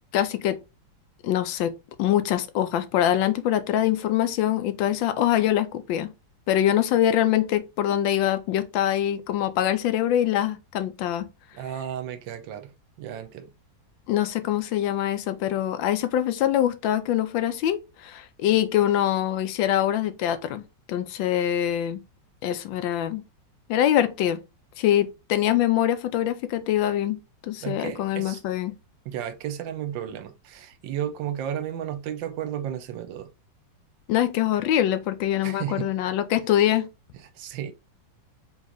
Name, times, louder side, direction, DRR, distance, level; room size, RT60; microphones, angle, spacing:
voice 1, 0.1-0.6 1.2-1.7 2.0-6.1 6.5-11.3 14.1-20.6 20.9-22.0 22.4-23.2 23.7-24.4 24.8-27.2 27.5-28.7 34.1-36.9, left 11 dB, 85° left, 1.3 m, -24 dB
voice 2, 11.5-12.7 13.0-13.5 27.6-28.4 29.0-33.3 35.4-35.9 37.4-37.7, right 10 dB, 80° right, 1.3 m, -33 dB
3.8 x 3.1 x 3.8 m
omnidirectional pair, 2.1 m